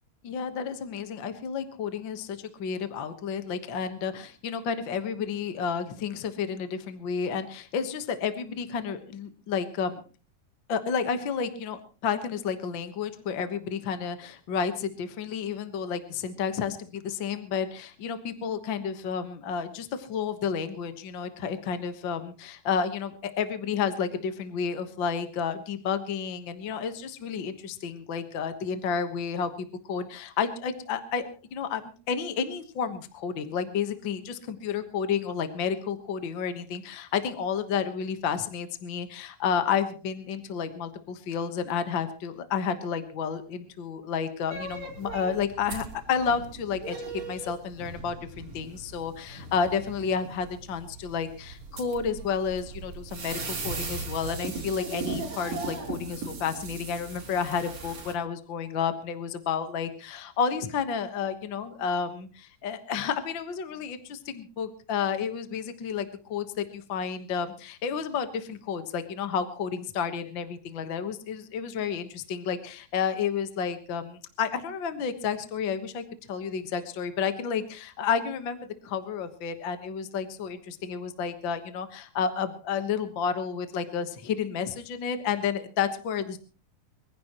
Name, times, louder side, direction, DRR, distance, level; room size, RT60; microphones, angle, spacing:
voice 1, 0.2-10.0 10.7-31.2 31.5-76.0 76.3-86.4, left 6 dB, 60° left, 9 dB, 1.3 m, -31 dB
sound 1, 44.5-58.1, right 3 dB, 50° right, 4.9 m, -38 dB
23.5 x 16.0 x 3.0 m, 0.36 s
omnidirectional pair, 4.0 m